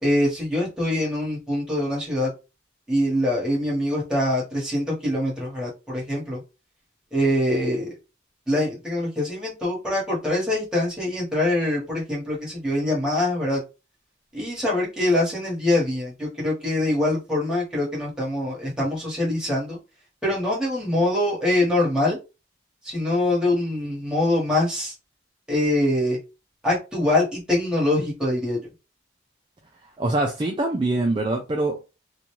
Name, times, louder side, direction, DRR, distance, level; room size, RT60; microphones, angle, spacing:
voice 1, 0.0-2.3 2.9-6.4 7.1-7.9 8.5-13.6 14.3-19.8 20.2-22.2 22.8-24.9 25.5-26.2 26.6-28.7, left 1 dB, 5° right, 1.2 m, -24 dB
voice 2, 30.0-31.8, right 2 dB, 25° right, 0.4 m, -24 dB
2.6 x 2.2 x 3.0 m
head